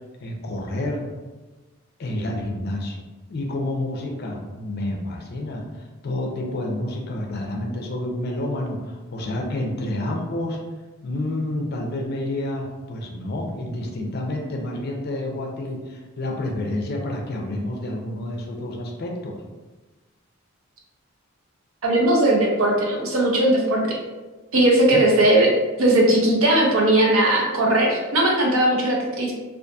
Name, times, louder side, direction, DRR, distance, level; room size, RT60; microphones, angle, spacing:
voice 1, 0.2-1.1 2.0-3.0 3.3-5.6 6.0-10.6 11.0-19.4 24.9-25.0, left 1 dB, 45° left, 1 dB, 0.4 m, -29 dB
voice 2, 21.8-24.0 24.5-25.5 25.8-29.3, right 1 dB, 70° right, -1 dB, 0.6 m, -18 dB
2.6 x 2.4 x 2.3 m, 1.2 s
head